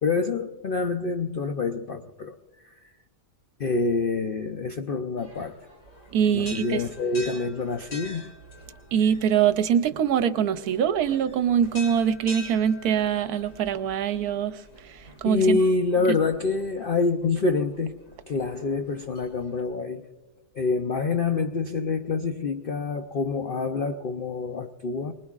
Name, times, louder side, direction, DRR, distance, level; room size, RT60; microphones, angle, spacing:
voice 1, 0.0-2.3 3.6-5.6 6.3-8.2 15.2-17.9 18.3-20.1 20.5-25.1, left 4 dB, 75° left, 6 dB, 0.5 m, -26 dB
sound 1, 5.2-19.6, left 1 dB, 45° left, 3.0 m, -46 dB
voice 2, 6.1-6.8 8.9-14.6 15.2-15.6, right 8 dB, 70° right, 11 dB, 1.1 m, -23 dB
24.0 x 20.0 x 2.4 m, 1.2 s
omnidirectional pair, 1.8 m